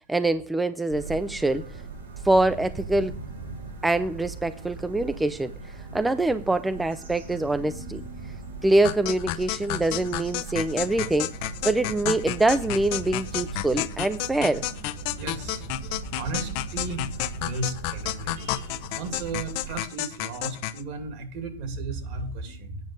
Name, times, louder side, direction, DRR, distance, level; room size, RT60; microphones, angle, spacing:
voice 1, 0.1-1.6 2.2-3.1 3.8-5.5 5.9-8.0 8.6-11.3 11.6-14.6, right 2 dB, 10° right, 0.4 m, -24 dB
sound 1, 0.9-19.8, right 3 dB, 75° right, 6.0 m, -39 dB
sound 2, 8.8-20.8, left 15 dB, 55° left, 0.6 m, -31 dB
voice 2, 15.1-15.6 16.1-17.1 17.3-22.8, right 3 dB, 55° right, 2.6 m, -35 dB
9.3 x 5.2 x 7.6 m
hypercardioid pair, 110°, 0 cm